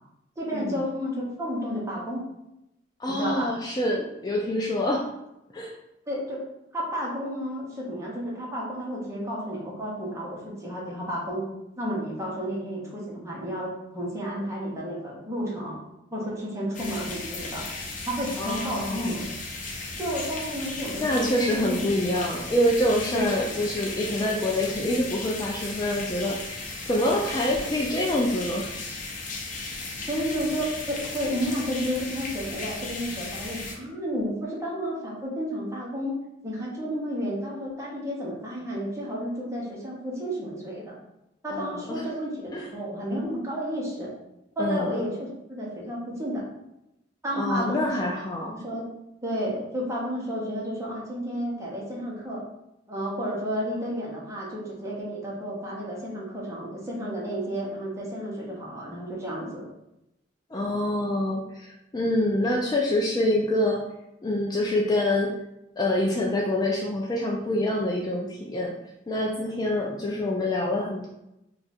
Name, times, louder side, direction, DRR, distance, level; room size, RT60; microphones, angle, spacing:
voice 1, 0.4-2.3 3.1-3.5 6.1-6.5 6.7-11.5 11.8-15.8 16.1-17.6 18.1-19.3 20.0-21.3 21.5-21.9 23.1-23.7 30.0-36.2 36.4-41.0 41.4-44.1 44.6-46.4 47.2-48.0 48.5-48.8 49.2-52.4 52.9-59.6, equal, 15° right, -4 dB, 0.9 m, -31 dB
voice 2, 3.0-5.1 5.5-5.7 18.4-19.2 21.0-28.7 41.5-42.0 42.5-42.7 44.6-45.1 47.3-48.5 60.5-63.8 64.2-65.3 65.8-68.8 69.1-71.1, left 1 dB, 20° left, -1 dB, 0.3 m, -26 dB
sound 1, 16.7-33.7, left 3 dB, 45° left, 0.7 m, -36 dB
2.7 x 2.4 x 4.1 m, 0.87 s
head